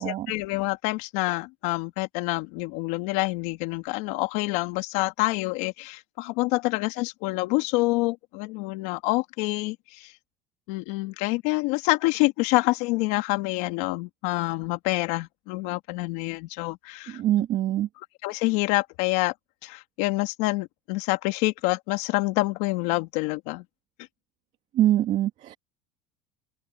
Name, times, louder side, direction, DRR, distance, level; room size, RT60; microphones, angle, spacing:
voice 1, 0.0-10.1 10.7-17.2 18.2-19.3 19.6-23.6, left 22 dB, 75° left, 2.8 m, -27 dB
voice 2, 17.1-17.9 24.8-25.5, right 13 dB, 45° right, 2.1 m, -24 dB
open air
cardioid pair, 150°, 17 cm